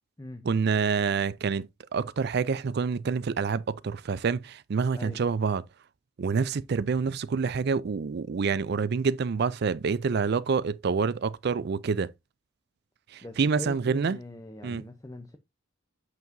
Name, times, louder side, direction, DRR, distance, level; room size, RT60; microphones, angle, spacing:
voice 1, 0.4-5.6 6.2-12.1 13.1-14.2 14.6-14.8, right 5 dB, 50° right, 0.4 m, -27 dB
voice 2, 13.2-15.4, left 1 dB, 15° left, 0.6 m, -42 dB
8.1 x 4.7 x 2.6 m
head